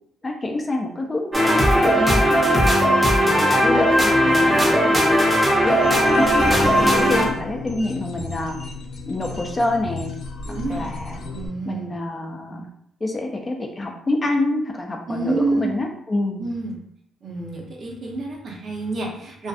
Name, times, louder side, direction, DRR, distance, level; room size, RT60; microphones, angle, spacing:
voice 1, 0.2-2.7 3.2-5.2 5.6-8.6 9.1-10.1 10.7-11.2 11.7-12.7 13.0-16.5, left 2 dB, 25° left, 2 dB, 0.4 m, -27 dB
sound 1, 1.3-7.2, equal, 20° right, 0.6 m, -17 dB
sound 2, 5.8-11.5, left 3 dB, 80° left, 0.5 m, -34 dB
voice 2, 10.4-11.0 11.3-12.0 15.1-15.8 16.4-16.8 17.2-19.5, right 2 dB, 50° right, -1 dB, 0.7 m, -28 dB
2.5 x 2.3 x 2.4 m, 0.72 s
cardioid pair, 90°, 0 cm